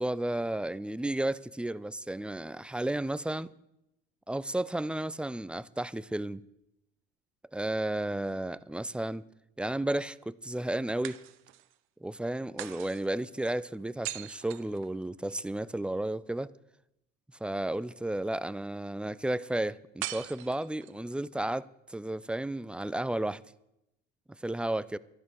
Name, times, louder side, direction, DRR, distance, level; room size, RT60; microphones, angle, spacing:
voice 1, 0.0-3.5 4.3-6.5 7.5-9.2 9.6-11.2 12.0-16.5 17.4-23.4 24.4-25.0, right 1 dB, 5° right, 0.4 m, -33 dB
sound 1, 8.2-9.0 11.0-11.8 12.6-15.4 20.0-21.1, right 16 dB, 80° right, 0.8 m, -43 dB
13.0 x 11.0 x 6.6 m
cardioid pair, 110°, 20 cm